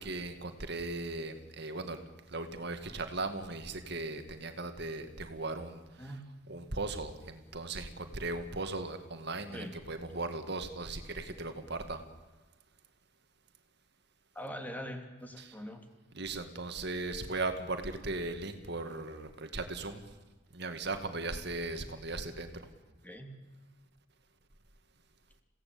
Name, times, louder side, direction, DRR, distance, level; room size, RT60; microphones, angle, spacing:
voice 1, 0.0-2.0 2.3-6.1 6.5-12.0 15.4-15.5 16.1-20.0 20.5-22.7, right 2 dB, 60° right, 7 dB, 2.1 m, -38 dB
voice 2, 14.3-15.9 23.0-23.3, equal, 10° left, 4 dB, 2.9 m, -42 dB
29.5 x 17.0 x 8.7 m, 1.2 s
head